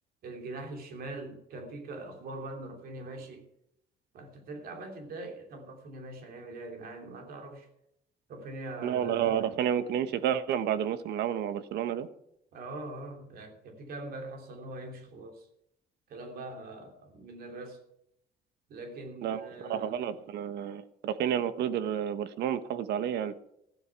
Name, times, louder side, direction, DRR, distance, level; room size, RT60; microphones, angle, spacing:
voice 1, 0.2-3.4 4.1-7.7 8.3-9.6 12.5-15.5 16.1-17.8 18.7-20.0, right 2 dB, 65° right, 4 dB, 3.0 m, -42 dB
voice 2, 8.8-12.1 19.2-19.4 19.7-23.3, right 9 dB, 80° right, 13 dB, 1.2 m, -30 dB
15.0 x 12.5 x 4.7 m, 0.76 s
cardioid pair, 150°, 17 cm